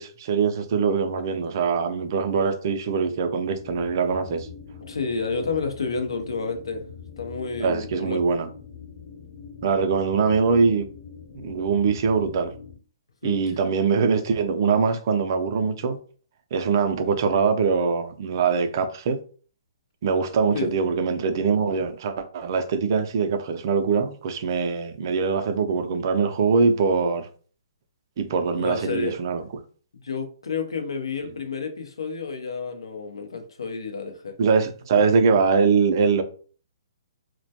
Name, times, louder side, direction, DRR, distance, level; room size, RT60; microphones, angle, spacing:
voice 1, 0.0-4.5 7.6-8.5 9.6-10.9 11.3-12.5 13.2-16.0 16.5-19.2 20.0-27.3 28.2-29.4 31.2-31.3 34.4-36.2, right 5 dB, 50° right, 0.4 m, -23 dB
sound 1, 3.5-12.8, left 6 dB, 45° left, 0.9 m, -43 dB
voice 2, 4.8-6.8 7.2-8.2 13.2-13.4 20.5-20.7 28.5-29.2 29.9-34.4, left 4 dB, 85° left, 0.6 m, -30 dB
2.2 x 2.1 x 2.7 m
hypercardioid pair, 145°, 3 cm